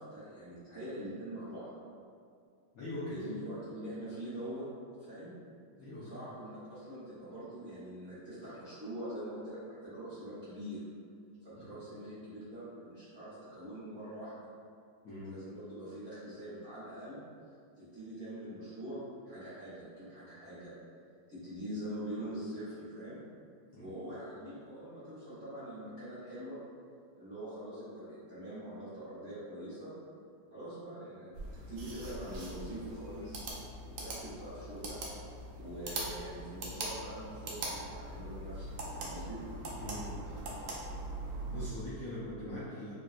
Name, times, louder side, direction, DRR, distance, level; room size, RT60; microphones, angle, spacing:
voice 1, 0.0-1.7 3.1-4.6 5.0-5.3 6.0-10.8 11.4-14.5 15.2-17.2 17.8-19.0 19.2-20.7 21.3-23.2 23.8-26.6 27.2-29.9 30.5-33.3 34.0-35.0 35.6-38.7 38.9-39.4, right 1 dB, 45° right, -13 dB, 1.2 m, -44 dB
voice 2, 2.7-3.3 5.8-6.1 11.6-11.7 15.0-15.3 23.7-23.9 39.7-40.2 41.5-42.9, left 1 dB, 75° left, -10 dB, 0.8 m, -42 dB
sound 1, 31.3-41.7, right 2 dB, 80° right, 0.8 m, -42 dB
4.0 x 2.2 x 2.4 m, 2.3 s
omnidirectional pair, 2.3 m